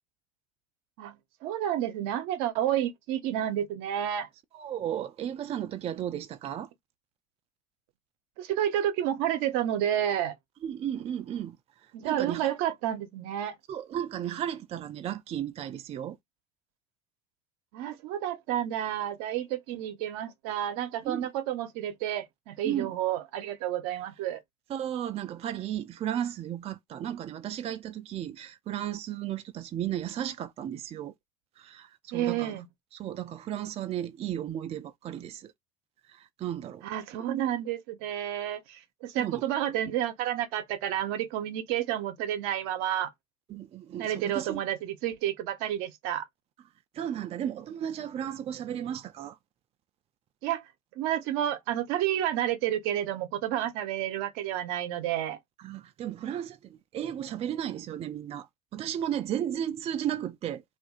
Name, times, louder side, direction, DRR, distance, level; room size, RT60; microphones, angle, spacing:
voice 1, 1.0-4.3 8.4-10.3 11.9-13.6 17.7-24.4 32.1-32.7 36.8-43.1 44.0-46.3 50.4-50.6 51.0-55.4, right 11 dB, 75° right, 0.7 m, -30 dB
voice 2, 4.5-6.7 10.6-12.5 13.7-16.2 21.0-21.3 22.6-22.9 24.7-31.1 31.6-32.6 32.9-35.5 36.1-36.9 39.2-39.4 43.5-44.6 46.9-49.4 55.6-60.6, right 10 dB, 40° right, 0.4 m, -34 dB
2.6 x 2.5 x 3.7 m
supercardioid pair, 85°, 16 cm